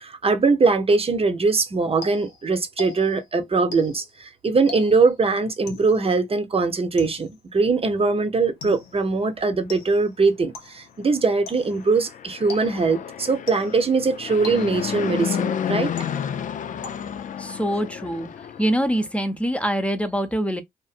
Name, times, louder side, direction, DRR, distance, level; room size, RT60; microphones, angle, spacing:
voice 1, 0.0-15.9, right 4 dB, 35° right, 0.8 m, -21 dB
sound 1, 2.0-3.3 3.7-4.1 4.7-5.2 5.7-6.1 7.0-7.5 8.6-9.1 9.7-10.1 10.5-10.9 11.5-11.9 12.5-13.0 13.5-13.9 14.4-15.0 16.0-16.5 16.8-17.3, left 4 dB, 90° left, 0.9 m, -40 dB
Fixed-wing aircraft airplane, 11.7-19.1, left 8 dB, 50° left, 0.4 m, -31 dB
voice 2, 17.4-18.3 18.6-20.6, equal, 5° left, 0.8 m, -24 dB
2.6 x 2.5 x 2.4 m
supercardioid pair, 60°, 17 cm